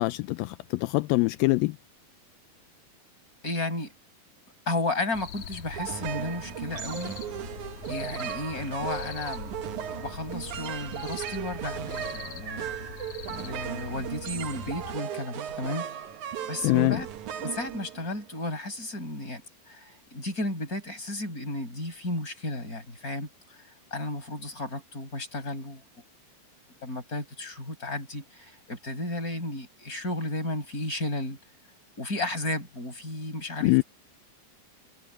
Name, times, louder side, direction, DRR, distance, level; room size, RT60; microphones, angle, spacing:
voice 1, 0.0-1.8 16.6-17.0 33.6-33.8, left 22 dB, 85° left, 2.4 m, -24 dB
voice 2, 3.4-3.9 4.7-7.2 7.9-9.6 10.0-12.7 13.3-15.9 16.5-17.1 17.4-19.4 19.7-23.6 23.9-25.8 26.8-31.4 32.0-33.8, left 2 dB, 20° left, 6.8 m, -33 dB
sound 1, 5.1-15.0, left 7 dB, 60° left, 2.8 m, -43 dB
sound 2, 5.7-18.4, right 10 dB, 65° right, 2.4 m, -37 dB
omnidirectional pair, 4.2 m